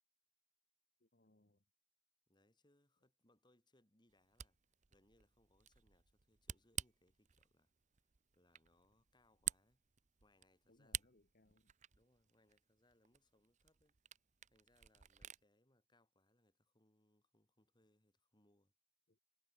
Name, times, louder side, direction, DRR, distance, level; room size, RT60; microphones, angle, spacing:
voice 1, 1.0-1.7 10.7-11.7 19.1-19.2, left 1 dB, 55° left, 1.8 m, -73 dB
voice 2, 2.3-4.6 4.9-7.7 8.3-9.8 10.2-11.1 11.9-14.0 14.4-18.7, left 1 dB, 25° left, 5.4 m, -76 dB
Camera, 4.1-15.4, right 11 dB, 40° right, 0.7 m, -51 dB
head